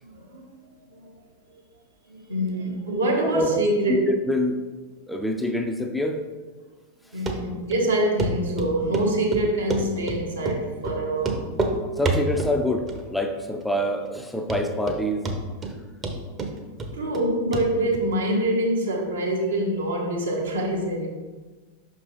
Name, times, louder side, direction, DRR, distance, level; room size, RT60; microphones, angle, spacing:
voice 1, 0.1-0.4 0.9-1.2 1.5-1.6 2.1-4.0 7.1-11.4 16.9-21.1, right 1 dB, 70° right, -1 dB, 1.3 m, -25 dB
voice 2, 3.2-3.6 4.1-4.6 5.1-6.2 12.0-15.3, left 1 dB, 5° left, 4 dB, 0.5 m, -25 dB
Run, 7.3-7.4 7.7-7.8 8.2-8.3 8.6-9.1 9.3-10.2 10.4-10.6 10.8-11.0 11.2-11.7 12.0-12.5 12.9-13.3 13.6-13.7 14.1-14.2 14.5-15.0 15.2-15.7 16.0-17.3 17.5-17.6 17.9-18.0, right 3 dB, 25° right, 0.8 m, -27 dB
5.8 x 5.4 x 3.0 m, 1.3 s
figure-of-eight pair, 90°, 0 cm